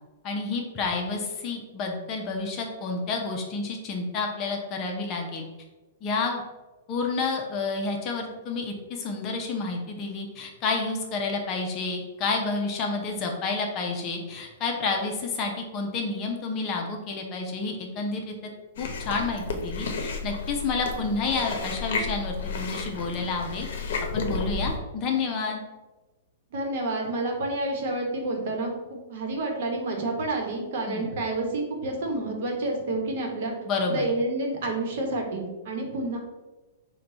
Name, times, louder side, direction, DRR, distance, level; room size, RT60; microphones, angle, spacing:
voice 1, 0.2-5.4 6.0-6.4 6.9-18.3 18.8-23.7 24.1-25.6 30.9-31.1 33.7-34.0, left 4 dB, 30° left, 1 dB, 0.6 m, -29 dB
Chewing mastication, 18.8-24.8, left 4 dB, 65° left, 0.7 m, -32 dB
voice 2, 26.5-33.5 33.9-36.2, right 2 dB, 55° right, 1 dB, 1.0 m, -29 dB
4.7 x 2.3 x 3.9 m, 1.2 s
hypercardioid pair, 155°, 0 cm